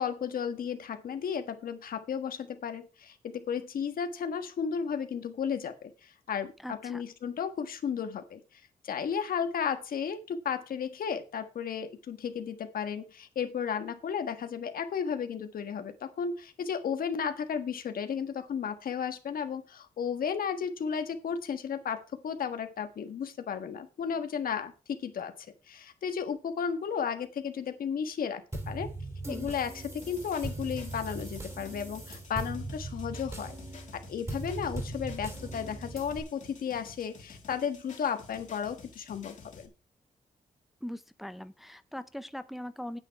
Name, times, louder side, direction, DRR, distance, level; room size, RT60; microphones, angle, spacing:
voice 1, 0.0-8.4 8.8-28.9 29.3-33.5 33.9-39.7, left 7 dB, 80° left, 8 dB, 1.5 m, -34 dB
voice 2, 6.6-7.0 29.2-29.5 40.8-43.0, equal, ahead, 12 dB, 0.5 m, -40 dB
sound 1, 28.5-36.2, right 2 dB, 20° right, 2.7 m, -39 dB
sound 2, 30.0-39.7, left 4 dB, 60° left, 2.6 m, -52 dB
9.5 x 8.9 x 4.7 m, 0.32 s
wide cardioid pair, 150°, 15 cm